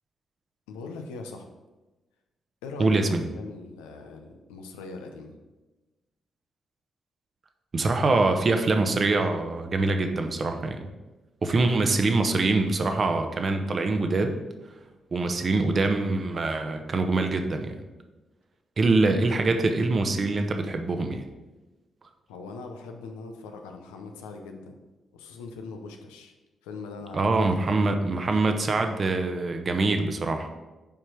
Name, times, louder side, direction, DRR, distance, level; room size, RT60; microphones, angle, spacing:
voice 1, 0.7-1.5 2.6-2.9 3.3-5.4 22.3-24.8 25.1-26.3 26.6-27.3 27.6-27.8 28.3-28.8, left 4 dB, 90° left, 4 dB, 0.7 m, -41 dB
voice 2, 2.8-3.2 7.7-10.9 11.4-14.3 15.1-17.8 18.8-21.2 27.1-30.5, right 3 dB, 50° right, 6 dB, 0.9 m, -24 dB
7.3 x 4.5 x 4.6 m, 1.1 s
hypercardioid pair, 45°, 0 cm